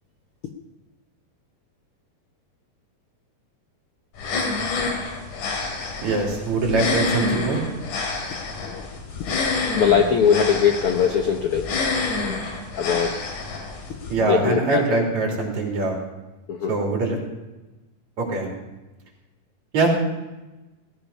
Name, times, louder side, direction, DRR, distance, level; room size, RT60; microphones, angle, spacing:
sound 1, 4.2-14.1, left 3 dB, 65° left, 3.7 m, -28 dB
voice 1, 6.0-7.6 14.1-16.0 16.7-17.2 18.2-18.5 19.7-19.9, right 3 dB, 55° right, 0 dB, 4.4 m, -22 dB
voice 2, 9.7-11.7 12.2-12.4 12.8-13.2 14.2-14.8 16.5-16.7, left 7 dB, 80° left, 5 dB, 1.2 m, -21 dB
17.5 x 15.0 x 5.5 m, 1.1 s
omnidirectional pair, 4.0 m